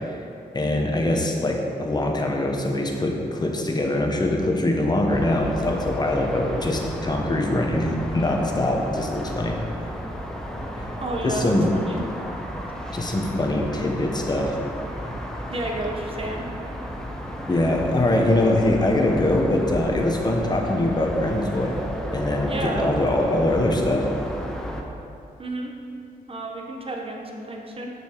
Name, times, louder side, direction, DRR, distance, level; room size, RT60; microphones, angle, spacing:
voice 1, 0.5-9.6 11.2-11.6 12.9-14.5 17.5-21.7 22.1-24.1, left 1 dB, 25° left, 1 dB, 1.0 m, -23 dB
sound 1, 5.1-24.8, equal, 5° left, 0.8 m, -33 dB
voice 2, 11.0-11.5 11.9-12.0 15.5-16.4 22.4-22.9 25.4-25.7 26.3-27.9, right 2 dB, 35° right, 1 dB, 1.1 m, -31 dB
6.8 x 6.7 x 4.6 m, 2.6 s
wide cardioid pair, 105°, 16 cm